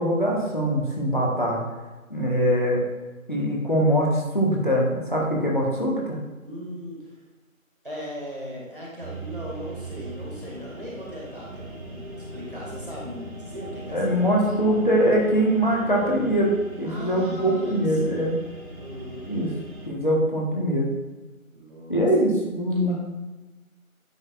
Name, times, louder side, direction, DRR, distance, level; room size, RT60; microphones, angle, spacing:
voice 1, 0.0-1.6 2.1-2.8 3.3-6.2 13.9-18.3 19.3-19.5 19.8-20.9 21.9-22.9, equal, 35° left, -4 dB, 1.3 m, -22 dB
voice 2, 6.4-7.1 7.8-14.6 16.8-18.2 18.8-19.3 21.5-22.1 22.8-22.9, equal, 40° right, -4 dB, 2.0 m, -38 dB
sound 1, 9.0-19.9, right 2 dB, 75° right, 1.8 m, -40 dB
9.6 x 6.4 x 2.5 m, 1.2 s
figure-of-eight pair, 175°, 42 cm